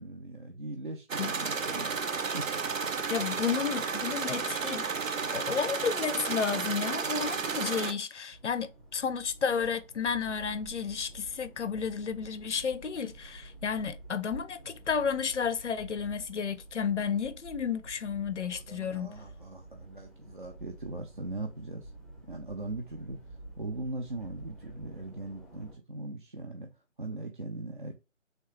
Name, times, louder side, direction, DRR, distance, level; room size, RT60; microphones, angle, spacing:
voice 1, 0.0-2.7 18.3-21.9 22.3-26.7 27.0-27.9, right 2 dB, 45° right, 0.5 m, -40 dB
sound 1, 1.1-7.9, right 5 dB, 85° right, 0.7 m, -32 dB
voice 2, 3.1-4.9 5.3-19.1, left 6 dB, 65° left, 0.5 m, -32 dB
sound 2, 8.3-25.7, right 2 dB, 10° right, 0.7 m, -49 dB
3.3 x 2.9 x 3.0 m
figure-of-eight pair, 155°, 39 cm